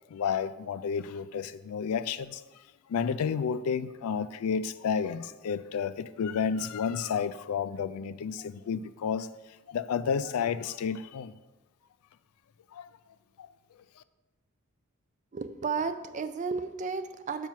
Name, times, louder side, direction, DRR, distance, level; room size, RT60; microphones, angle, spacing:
voice 1, 0.1-2.5 2.9-9.3 9.7-11.3 12.7-12.9 13.4-13.5, left 6 dB, 80° left, 0.4 m, -31 dB
voice 2, 15.3-17.5, right 5 dB, 35° right, 0.4 m, -33 dB
7.3 x 4.5 x 5.6 m
head